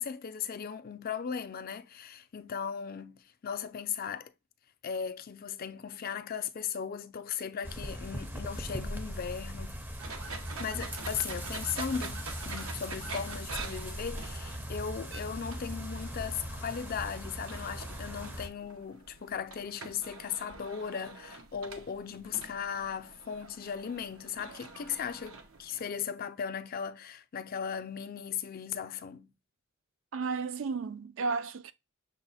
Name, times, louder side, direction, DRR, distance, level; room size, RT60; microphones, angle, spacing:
voice 1, 0.0-4.3 4.8-9.8 10.6-29.3, left 7 dB, 45° left, 0.4 m, -37 dB
sound 1, 7.6-18.5, equal, 10° right, 0.5 m, -39 dB
sound 2, 10.0-25.9, right 4 dB, 90° right, 0.8 m, -46 dB
voice 2, 30.1-31.7, right 4 dB, 70° right, 0.4 m, -33 dB
6.2 x 2.1 x 4.0 m
head